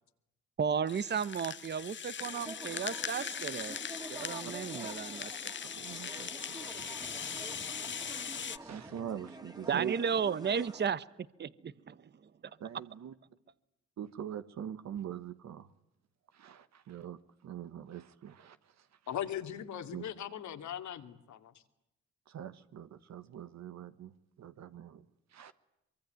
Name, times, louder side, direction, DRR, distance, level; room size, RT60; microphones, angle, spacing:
voice 1, 0.6-3.8 4.1-5.3 9.7-11.0 11.4-11.9, right 6 dB, 35° right, 17 dB, 0.9 m, -33 dB
Rattle (instrument), 0.9-8.6, left 7 dB, 40° left, 1.1 m, -40 dB
sound 1, 2.2-10.9, right 2 dB, 15° right, 2.6 m, -48 dB
voice 2, 5.6-7.6 8.0-10.0 12.6-13.1 14.0-15.7 16.3-18.6 19.9-20.1 22.3-24.1 24.4-25.0 25.3-25.5, right 9 dB, 65° right, 11 dB, 1.4 m, -44 dB
voice 3, 19.1-21.5, left 10 dB, 70° left, 7 dB, 2.6 m, -39 dB
24.5 x 23.5 x 9.4 m, 0.88 s
cardioid pair, 90°, 30 cm